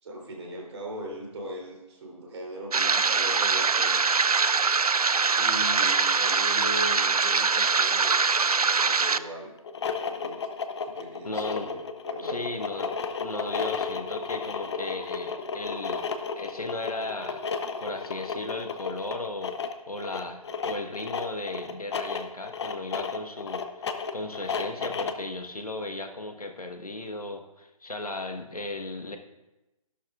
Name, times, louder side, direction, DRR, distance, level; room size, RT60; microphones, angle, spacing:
voice 1, 0.0-4.0 5.3-9.5 10.0-10.4 10.8-12.5, right 1 dB, 50° right, -1 dB, 3.4 m, -39 dB
sound 1, 2.7-9.2, right 4 dB, 90° right, 0.5 m, -23 dB
sound 2, 9.6-25.3, left 5 dB, 50° left, 0.8 m, -33 dB
voice 2, 11.2-11.7 12.2-12.9 13.2-16.1 16.4-17.4 17.8-19.5 19.9-29.2, left 2 dB, 85° left, 5 dB, 1.3 m, -36 dB
15.0 x 11.5 x 2.5 m, 0.98 s
figure-of-eight pair, 140°, 19 cm